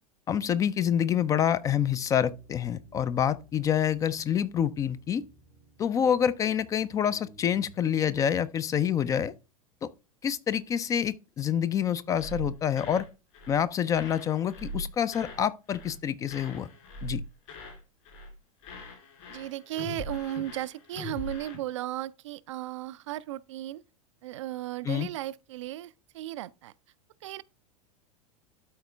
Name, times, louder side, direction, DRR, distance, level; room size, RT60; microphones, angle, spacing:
voice 1, 0.3-5.2 5.8-9.3 9.8-9.9 10.2-13.1 13.5-16.7 17.0-17.2 24.8-25.1, left 9 dB, 20° left, 0.3 m, -27 dB
sound 1, 0.9-8.1, equal, 85° left, 2.6 m, -57 dB
sound 2, 12.1-13.1 13.3-13.6 13.9-15.4 15.7-16.0 16.3-17.8 18.0-18.3 18.6-21.6, left 1 dB, 55° left, 3.3 m, -41 dB
voice 2, 19.3-23.8 24.2-26.7 27.2-27.4, right 14 dB, 55° right, 0.4 m, -35 dB
12.0 x 4.2 x 3.3 m
figure-of-eight pair, 90°, 18 cm